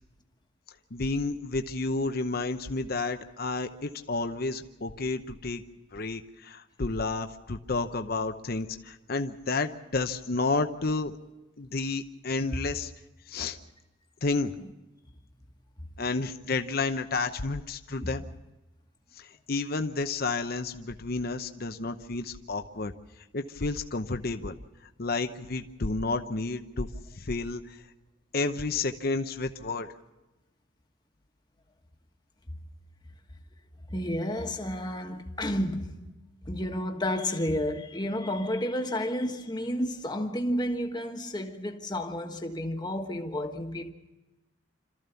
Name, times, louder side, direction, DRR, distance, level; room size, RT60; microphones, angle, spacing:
voice 1, 0.9-5.6 5.9-11.1 11.6-12.9 13.3-13.6 14.2-14.5 16.0-18.2 19.2-22.9 23.3-24.6 25.0-26.9 27.2-27.8 28.3-29.9, left 3 dB, 50° left, 0.8 m, -31 dB
voice 2, 33.9-36.1 36.5-43.9, left 1 dB, 20° left, 1.4 m, -31 dB
26.5 x 14.0 x 6.9 m
head